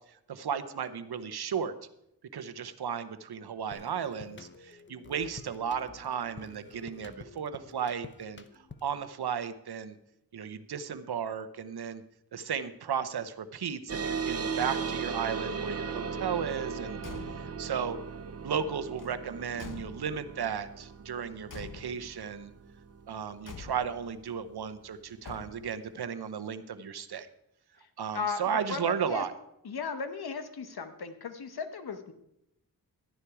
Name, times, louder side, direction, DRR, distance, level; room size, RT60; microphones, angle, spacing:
voice 1, 0.3-1.7 2.3-10.0 10.3-12.0 12.3-18.0 18.4-22.5 23.1-27.3 28.0-29.3, right 7 dB, 90° right, 12 dB, 0.8 m, -35 dB
sound 1, 3.7-9.1, left 4 dB, 30° left, 0.8 m, -50 dB
sound 2, 13.9-24.8, right 5 dB, 40° right, 0.7 m, -37 dB
Car / Truck / Slam, 16.9-17.7 18.9-20.4 21.5-22.2 23.4-24.1 25.2-25.9, left 5 dB, 55° left, 0.9 m, -46 dB
voice 2, 28.1-29.2 29.6-32.1, left 5 dB, 80° left, 9 dB, 1.1 m, -36 dB
11.5 x 10.0 x 4.8 m, 0.81 s
wide cardioid pair, 110°, 37 cm